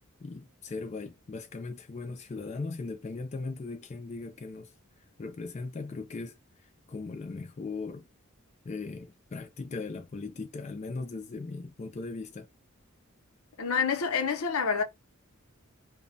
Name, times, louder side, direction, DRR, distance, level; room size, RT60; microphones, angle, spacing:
voice 1, 0.2-4.7 5.2-8.1 8.6-12.5, left 3 dB, 30° left, 0.3 m, -38 dB
voice 2, 13.6-14.8, left 5 dB, 75° left, 0.6 m, -27 dB
2.2 x 2.1 x 3.7 m
head